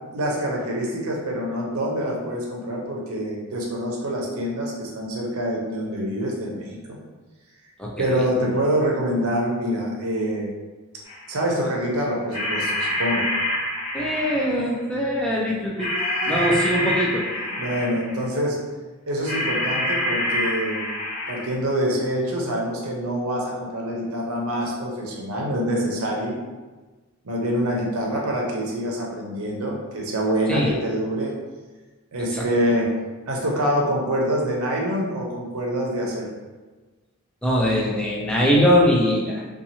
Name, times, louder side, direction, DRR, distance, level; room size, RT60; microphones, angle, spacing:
voice 1, 0.1-7.0 8.0-10.5 11.3-13.3 16.0-16.5 17.5-18.6 19.1-20.8 21.3-26.4 27.2-31.3 32.1-32.9 33.3-36.3, equal, 75° right, -1 dB, 0.6 m, -25 dB
sound 1, 11.0-11.3 12.3-14.7 15.8-18.2 19.2-21.5, left 1 dB, 30° left, 0.9 m, -26 dB
voice 2, 13.9-15.9 16.2-17.3 30.5-30.7 32.3-32.4 37.4-39.5, equal, 5° left, -4 dB, 0.3 m, -21 dB
2.7 x 2.3 x 2.8 m, 1.3 s
head